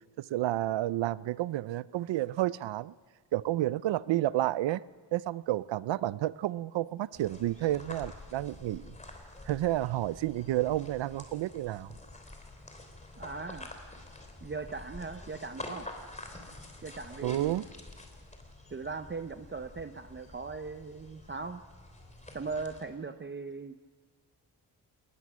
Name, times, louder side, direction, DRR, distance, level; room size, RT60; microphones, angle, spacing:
voice 1, 0.2-2.9 3.3-4.8 5.1-8.9 9.5-11.9 17.2-17.7, right 14 dB, 90° right, 19 dB, 0.6 m, -30 dB
sound 1, 7.1-22.8, left 2 dB, 15° left, 3.2 m, -48 dB
voice 2, 13.2-13.7 14.4-15.9 16.8-17.5 18.7-21.6 22.3-23.8, right 4 dB, 25° right, 9 dB, 0.7 m, -39 dB
21.5 x 19.5 x 6.2 m, 1.5 s
cardioid pair, 110°, 43 cm